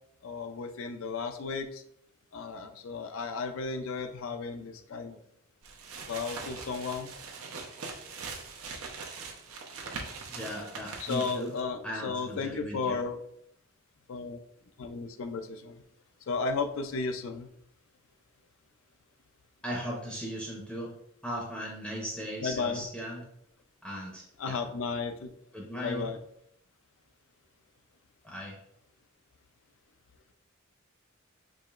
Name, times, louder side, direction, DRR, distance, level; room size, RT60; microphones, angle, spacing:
voice 1, 0.2-1.8 2.3-5.2 6.1-7.1 11.0-13.2 14.1-14.4 14.8-15.8 16.3-17.5 22.4-22.9 24.4-25.3 25.8-26.2, left 4 dB, 65° left, 8 dB, 0.4 m, -34 dB
sound 1, 5.6-11.6, right 4 dB, 85° right, 0.7 m, -42 dB
voice 2, 10.3-11.5 11.8-13.0 19.6-20.9 21.2-23.2 23.8-24.6 25.5-26.1 28.2-28.6, equal, 5° left, -3 dB, 0.6 m, -37 dB
4.8 x 2.9 x 2.4 m, 0.72 s
head